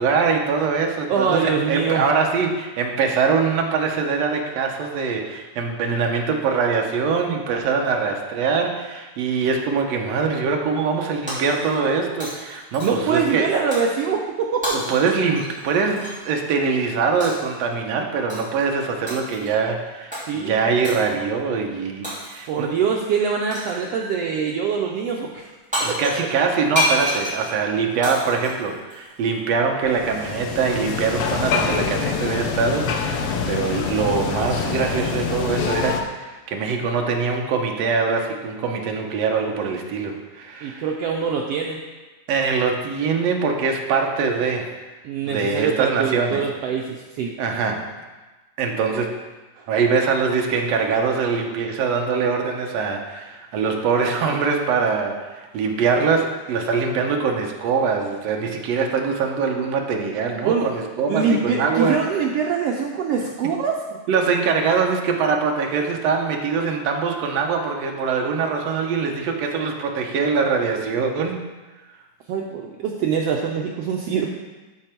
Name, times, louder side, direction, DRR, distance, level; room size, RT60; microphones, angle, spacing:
voice 1, 0.0-13.5 14.7-22.7 25.8-40.9 42.3-44.7 45.3-46.5 47.4-47.9 48.6-49.2 49.7-62.3 64.1-71.4, right 5 dB, 70° right, 2 dB, 1.7 m, -23 dB
voice 2, 1.1-2.1 12.8-14.8 20.3-20.7 22.5-25.5 25.9-26.0 40.6-41.8 45.0-47.3 49.6-49.7 60.4-60.7 61.1-63.7 72.3-74.3, right 6 dB, 90° right, 0 dB, 1.3 m, -24 dB
Shatter, 11.3-11.9 12.2-13.1 13.7-14.0 14.6-16.2 17.2-17.5 18.3-18.6 19.1-19.5 20.1-20.3 20.8-21.1 22.0-22.6 23.5-23.9 25.4-25.5 25.7-29.3, left 1 dB, 5° right, 2.5 m, -29 dB
sound 1, 29.9-36.0, left 6 dB, 90° left, 1.2 m, -25 dB
12.5 x 4.6 x 4.4 m, 1.2 s
omnidirectional pair, 3.6 m